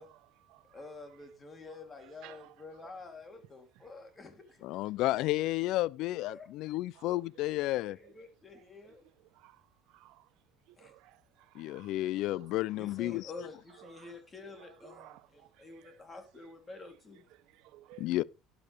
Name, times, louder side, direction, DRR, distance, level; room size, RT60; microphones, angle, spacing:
voice 1, 0.0-0.8 1.7-2.5 2.8-2.9 6.9-7.4 8.0-8.1 8.6-10.3 10.7-11.9 12.3-12.5 13.1-13.2 13.8-16.0 17.3-18.2, right 18 dB, 65° right, 0.8 m, -58 dB
voice 2, 0.7-4.6 6.3-6.5 7.8-9.0 10.8-10.9 12.3-17.2, left 3 dB, 20° left, 3.2 m, -49 dB
voice 3, 4.6-8.0 11.5-13.3 18.0-18.2, left 16 dB, 55° left, 0.5 m, -32 dB
12.0 x 12.0 x 3.4 m
cardioid pair, 150°, 0 cm